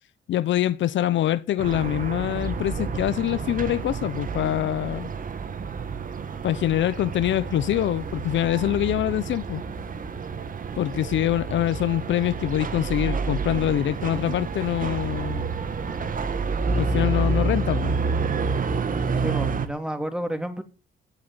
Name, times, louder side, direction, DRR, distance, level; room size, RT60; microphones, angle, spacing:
voice 1, 0.3-5.1 6.4-9.6 10.8-15.5 16.8-18.0, left 12 dB, 70° left, 0.8 m, -24 dB
sound 1, 1.6-19.7, right 4 dB, 45° right, 2.0 m, -29 dB
voice 2, 19.2-20.6, equal, 5° right, 3.1 m, -30 dB
16.5 x 6.1 x 9.7 m
cardioid pair, 90°, 20 cm